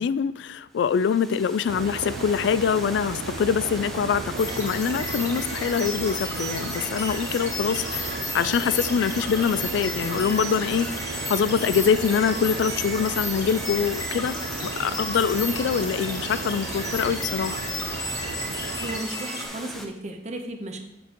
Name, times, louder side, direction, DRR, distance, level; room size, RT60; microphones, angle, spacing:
voice 1, 0.0-17.6, left 7 dB, 75° left, 17 dB, 0.3 m, -24 dB
Water, 0.7-19.9, equal, ahead, 0.7 m, -39 dB
sound 1, 1.7-19.0, right 5 dB, 65° right, 0.4 m, -35 dB
sound 2, 4.4-19.5, left 2 dB, 20° left, 1.7 m, -33 dB
voice 2, 18.8-20.8, right 1 dB, 40° right, 4 dB, 0.8 m, -34 dB
8.3 x 7.2 x 3.0 m, 0.83 s
head